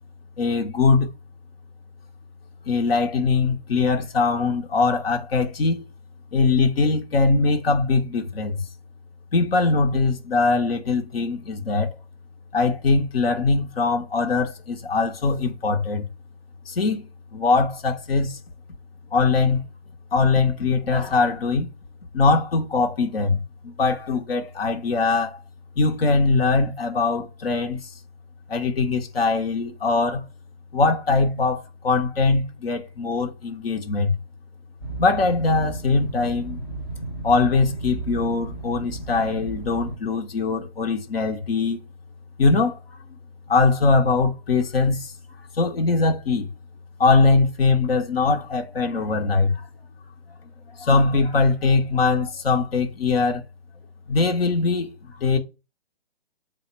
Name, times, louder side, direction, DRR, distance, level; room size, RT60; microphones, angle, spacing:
voice 1, 0.4-1.1 2.7-5.8 6.3-8.6 9.3-11.9 12.5-16.1 16.7-18.4 19.1-19.6 20.1-21.7 22.1-23.4 23.6-25.4 25.8-27.9 28.5-30.2 30.7-34.1 35.0-36.6 37.2-41.8 42.4-42.8 43.5-45.1 45.5-46.5 47.0-49.7 50.8-53.4 54.1-55.4, left 3 dB, 65° left, 0.7 m, -21 dB
sound 1, 34.8-40.0, right 2 dB, 25° left, 0.4 m, -33 dB
3.7 x 2.1 x 4.2 m
hypercardioid pair, 155°, 32 cm